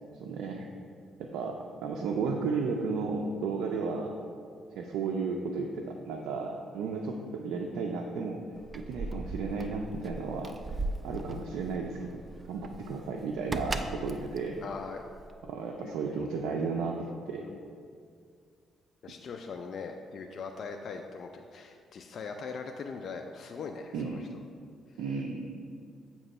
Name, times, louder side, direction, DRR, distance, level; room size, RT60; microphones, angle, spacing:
voice 1, 0.2-0.7 1.3-4.1 4.8-8.4 8.7-10.5 11.0-12.2 12.5-14.6 15.5-17.4 23.9-24.3 25.0-25.7, right 4 dB, 90° right, 1 dB, 0.4 m, -33 dB
Keys jangling, 8.5-15.5, right 2 dB, 25° right, 0.3 m, -38 dB
voice 2, 14.6-15.1 15.8-16.3 17.4-17.6 19.0-24.3 24.9-25.0, left 5 dB, 55° left, 3 dB, 0.3 m, -41 dB
7.5 x 3.0 x 5.4 m, 2.2 s
cardioid pair, 105°, 0 cm